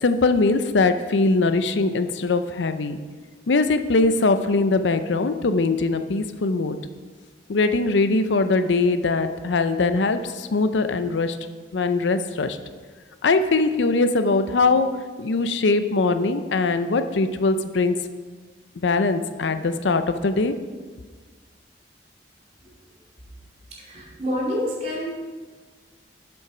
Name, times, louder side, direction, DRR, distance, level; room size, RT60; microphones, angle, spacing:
voice 1, 0.0-3.0 3.5-6.8 7.5-11.4 11.7-12.6 13.2-14.9 15.2-18.0 18.8-20.5, left 3 dB, 85° left, 10 dB, 0.6 m, -21 dB
voice 2, 23.7-25.1, equal, 40° right, -3 dB, 2.5 m, -28 dB
7.9 x 7.1 x 5.0 m, 1.4 s
head